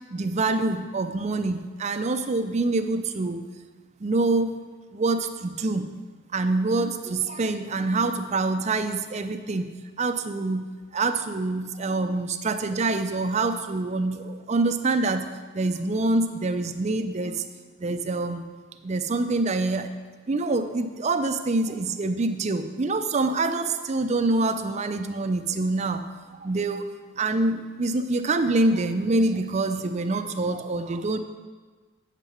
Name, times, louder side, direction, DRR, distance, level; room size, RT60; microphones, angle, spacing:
voice 1, 0.1-3.4 4.0-4.5 4.9-5.9 6.3-9.7 10.0-15.3 15.5-17.4 17.8-18.4 18.8-19.9 20.3-26.0 26.4-26.9 27.2-31.2, right 2 dB, 35° right, 8 dB, 0.4 m, -25 dB
7.8 x 6.7 x 4.8 m, 1.4 s
head